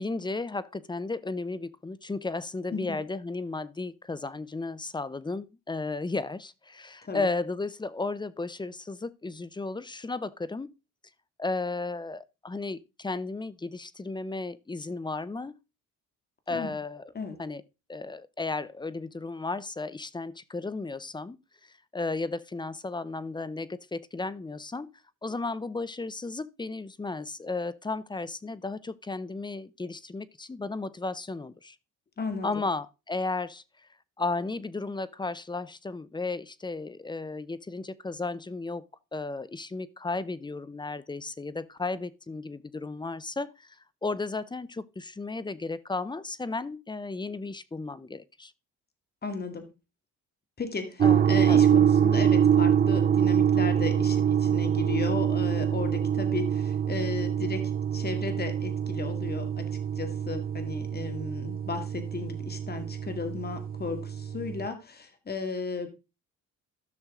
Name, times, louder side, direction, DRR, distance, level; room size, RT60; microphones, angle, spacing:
voice 1, 0.0-10.7 11.4-15.5 16.5-17.0 17.4-17.6 17.9-21.4 21.9-24.9 25.2-31.8 32.4-33.6 34.2-38.8 39.1-43.8 44.0-48.5 51.0-51.6, left 3 dB, 15° left, 0.6 m, -34 dB
voice 2, 32.2-32.6 49.2-49.7 50.6-59.7 60.0-65.9, left 4 dB, 30° left, 2.1 m, -35 dB
sound 1, 51.0-64.7, right 9 dB, 30° right, 0.4 m, -25 dB
14.0 x 6.2 x 3.7 m
cardioid pair, 100°, 32 cm